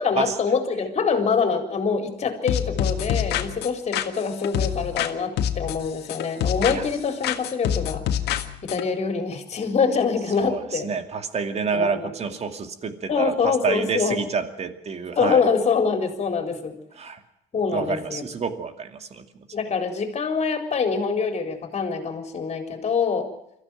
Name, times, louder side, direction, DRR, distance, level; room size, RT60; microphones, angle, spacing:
voice 1, 0.0-8.0 8.6-10.9 11.7-12.1 13.1-14.2 15.2-16.8 17.5-18.2 19.5-23.3, left 5 dB, 40° left, 5 dB, 4.3 m, -25 dB
sound 1, 2.5-5.1 5.4-7.0 7.2-8.8, left 10 dB, 75° left, 1.8 m, -26 dB
voice 2, 10.4-15.4 16.9-17.2 17.7-19.5, right 5 dB, 40° right, 8 dB, 2.4 m, -28 dB
24.0 x 15.0 x 9.2 m, 0.78 s
cardioid pair, 110°, 17 cm